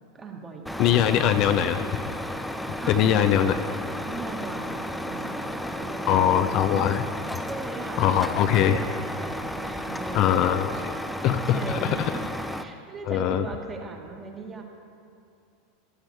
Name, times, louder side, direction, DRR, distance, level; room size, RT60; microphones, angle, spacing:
voice 1, 0.1-1.0 2.8-3.8 4.1-6.9 7.1-10.9 11.2-12.2 12.6-14.6, right 3 dB, 25° right, 1 dB, 1.8 m, -39 dB
Truck, 0.6-12.6, equal, 5° left, 0.6 m, -33 dB
voice 2, 0.8-1.8 2.9-3.5 6.1-7.0 8.0-8.8 10.1-10.7 11.2-12.1 13.1-13.5, left 10 dB, 45° left, 9 dB, 0.5 m, -22 dB
14.5 x 12.5 x 3.4 m, 2.5 s
figure-of-eight pair, 85°, 0 cm